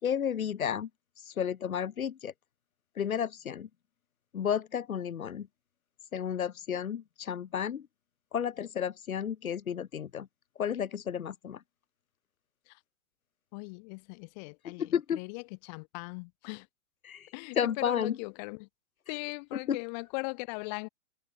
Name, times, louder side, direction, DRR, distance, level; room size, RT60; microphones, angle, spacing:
voice 1, 0.0-0.9 1.3-2.3 3.0-3.7 4.3-5.5 6.1-7.9 8.3-10.3 10.6-11.6 14.8-15.2 17.0-17.3 17.5-18.2 19.7-19.8, left 8 dB, 85° left, 4.4 m, -32 dB
voice 2, 13.5-16.7 17.3-18.7 19.1-20.9, left 32 dB, 30° left, 3.5 m, -39 dB
hypercardioid pair, 160°, 41 cm